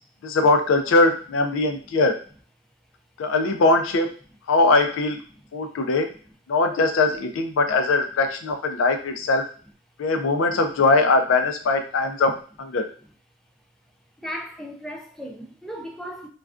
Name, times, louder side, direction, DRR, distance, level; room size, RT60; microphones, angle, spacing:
voice 1, 0.2-2.2 3.2-4.1 4.5-5.2 5.5-6.1 6.5-9.4 10.0-12.3 12.6-12.9, left 3 dB, 80° left, 0.4 m, -21 dB
voice 2, 14.2-16.3, equal, ahead, 0.3 m, -36 dB
2.3 x 2.2 x 2.4 m
head